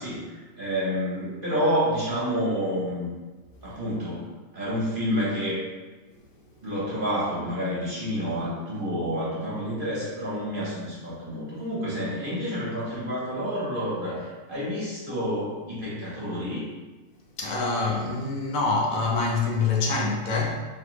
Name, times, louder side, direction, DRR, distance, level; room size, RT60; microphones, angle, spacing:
voice 1, 0.0-3.1 3.6-5.6 6.6-16.6, equal, 40° right, -8 dB, 1.1 m, -29 dB
voice 2, 17.4-20.6, left 3 dB, 70° left, -1 dB, 1.0 m, -25 dB
4.0 x 2.9 x 3.0 m, 1.2 s
omnidirectional pair, 1.6 m